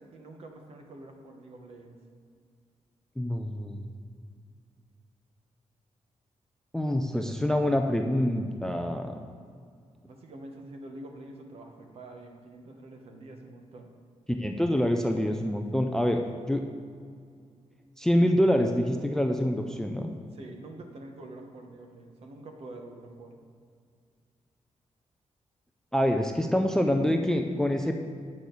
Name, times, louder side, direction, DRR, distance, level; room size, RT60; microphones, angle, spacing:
voice 1, 0.0-2.0 10.0-13.9 20.3-23.4, right 2 dB, 55° right, 3 dB, 1.0 m, -46 dB
voice 2, 3.2-3.9 6.7-9.2 14.4-16.2 16.5-16.6 18.0-20.1 25.9-27.9, equal, 5° left, 4 dB, 0.4 m, -26 dB
8.4 x 6.4 x 3.9 m, 2.2 s
wide cardioid pair, 175°, 12 cm